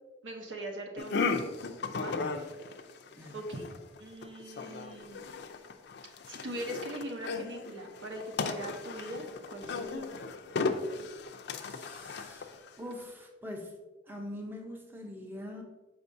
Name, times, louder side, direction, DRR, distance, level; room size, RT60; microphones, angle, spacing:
voice 1, 0.2-1.3 2.0-2.2 3.3-3.7 4.0-5.3 6.3-10.1, right 1 dB, 80° right, 2 dB, 1.0 m, -41 dB
sound 1, 1.0-12.9, left 4 dB, 60° left, 0.5 m, -36 dB
voice 2, 11.6-13.7 14.1-15.6, left 1 dB, 10° right, 1 dB, 0.6 m, -43 dB
6.9 x 5.2 x 2.6 m, 1.2 s
head